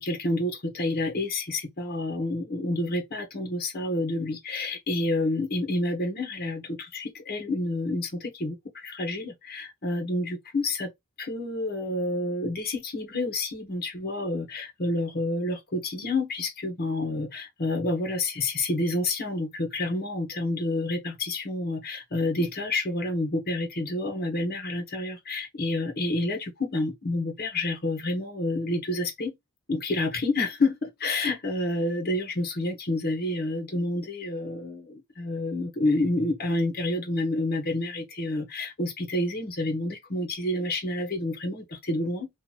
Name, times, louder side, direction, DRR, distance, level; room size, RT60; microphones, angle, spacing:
voice 1, 0.0-10.9 11.2-29.3 29.7-42.3, left 2 dB, 45° left, 1.3 m, -29 dB
3.0 x 2.8 x 4.2 m
head